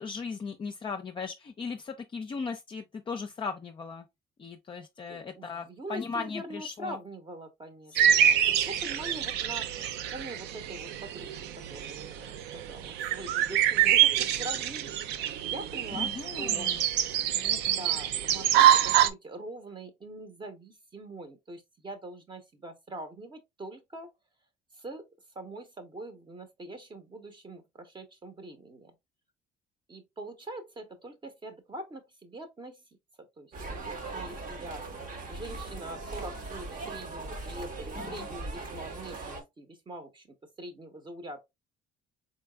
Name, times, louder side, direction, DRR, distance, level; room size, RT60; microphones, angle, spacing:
voice 1, 0.0-4.0 4.4-7.0 8.1-8.2 8.4-8.5 15.9-16.8 17.3-17.8 38.0-38.3, left 5 dB, 30° left, 0.5 m, -38 dB
voice 2, 5.1-9.7 10.1-16.7 17.6-24.1 24.8-25.0 25.3-28.9 29.9-32.8 33.2-34.8 35.3-41.4, right 1 dB, 25° right, 0.8 m, -43 dB
sound 1, 8.0-19.1, right 10 dB, 85° right, 0.4 m, -26 dB
sound 2, 33.5-39.4, right 3 dB, 50° right, 1.0 m, -39 dB
4.0 x 3.4 x 2.3 m
cardioid pair, 110°, 17 cm